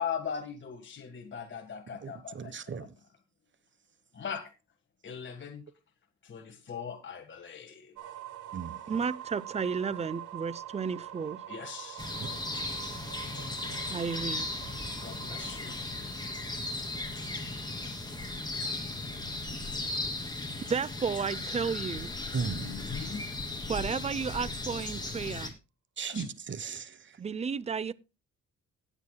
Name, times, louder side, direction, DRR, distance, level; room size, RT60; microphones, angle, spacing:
voice 1, 0.0-2.6 4.1-4.4 5.0-5.6 6.2-7.9 11.5-12.3 15.0-15.8 22.5-23.3 26.1-26.2, left 7 dB, 40° left, 1.5 m, -39 dB
voice 2, 2.0-2.9 8.5-8.8 12.2-12.3 22.3-22.7 26.0-27.2, right 5 dB, 40° right, 1.1 m, -36 dB
sound 1, 7.9-19.7, right 12 dB, 85° right, 1.8 m, -46 dB
voice 3, 8.9-11.4 13.9-14.6 20.7-22.1 23.7-25.5 27.2-27.9, right 6 dB, 20° right, 0.6 m, -32 dB
sound 2, 12.0-25.5, left 2 dB, 15° left, 2.7 m, -36 dB
19.0 x 8.1 x 2.2 m
cardioid pair, 90°, 30 cm